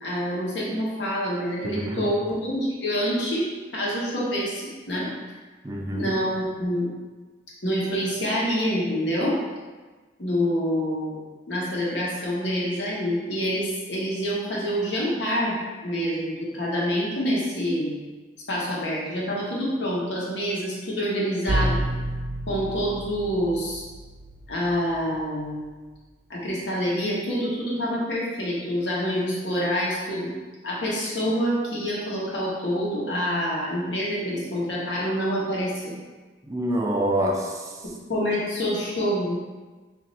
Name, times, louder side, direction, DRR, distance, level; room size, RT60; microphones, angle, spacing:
voice 1, 0.0-3.4 3.7-5.1 5.9-6.9 7.6-9.4 10.2-15.6 15.8-17.9 18.5-21.8 22.5-23.8 24.5-25.7 26.3-30.3 30.6-35.9 38.1-39.3, equal, 70° left, -5 dB, 1.0 m, -26 dB
voice 2, 1.6-2.1 5.6-6.1 36.5-37.8, right 1 dB, 20° right, 0 dB, 0.3 m, -26 dB
sound 1, 21.5-25.3, right 1 dB, 50° right, 0.7 m, -30 dB
3.1 x 2.6 x 4.0 m, 1.3 s
head